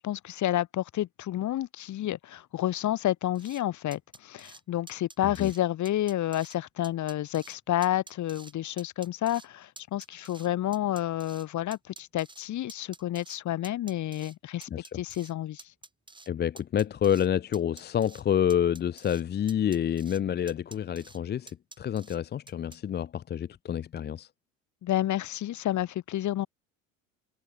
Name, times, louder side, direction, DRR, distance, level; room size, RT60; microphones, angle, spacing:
voice 1, 0.0-14.7 14.9-15.6 24.8-26.5, left 13 dB, 45° left, 3.7 m, -30 dB
sound 1, 3.4-3.6 3.9-4.6 4.9-5.6 5.9-6.6 6.8-7.6 7.8-8.5 8.8-9.5 9.8-11.5 11.7-13.4 13.6-14.4 14.6-15.3 15.6-16.3 16.6-17.3 17.5-18.2 18.5-19.2 19.5-20.2 20.5-21.2 21.5-22.2 22.5-22.8, right 2 dB, 10° right, 4.9 m, -49 dB
voice 2, 14.7-15.0 16.3-24.3, left 9 dB, 25° left, 0.7 m, -28 dB
figure-of-eight pair, 65°, 41 cm